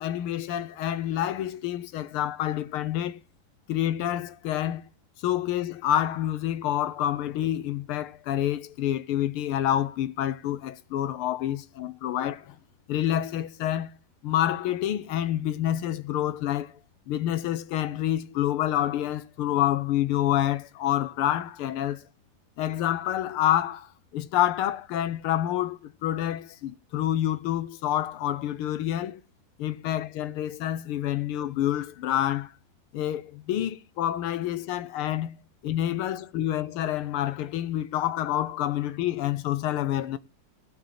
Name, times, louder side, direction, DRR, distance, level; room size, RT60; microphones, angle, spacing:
voice 1, 0.0-3.2 3.7-4.8 5.2-12.6 12.9-13.9 14.2-16.8 17.1-22.0 22.6-29.2 29.6-32.5 32.9-35.4 35.6-40.2, left 12 dB, 90° left, 1.7 m, -28 dB
17.0 x 5.8 x 7.4 m
omnidirectional pair, 2.3 m